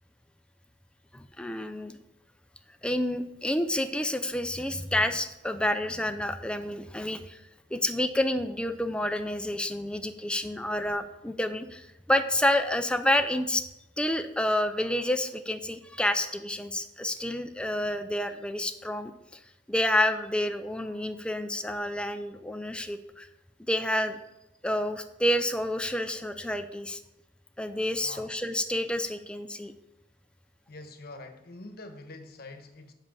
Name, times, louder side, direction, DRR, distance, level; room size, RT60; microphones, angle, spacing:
voice 1, 1.1-2.0 2.8-7.4 7.7-13.6 14.0-19.4 19.7-23.3 23.7-24.2 24.6-27.0 27.6-29.7, left 1 dB, 5° left, 8 dB, 0.5 m, -29 dB
voice 2, 28.0-28.4 30.7-32.9, left 2 dB, 55° left, 7 dB, 1.1 m, -45 dB
7.7 x 5.5 x 7.2 m, 0.89 s
head